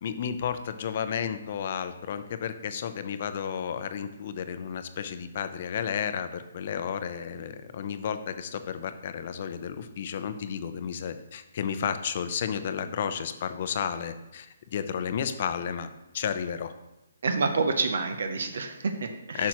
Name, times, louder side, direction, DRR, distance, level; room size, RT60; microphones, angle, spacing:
voice 1, 0.0-16.7 19.3-19.5, left 7 dB, 45° left, 10 dB, 0.6 m, -32 dB
voice 2, 17.2-19.5, right 4 dB, 70° right, 7 dB, 0.7 m, -28 dB
10.0 x 6.2 x 3.0 m, 0.93 s
hypercardioid pair, 165°, 0 cm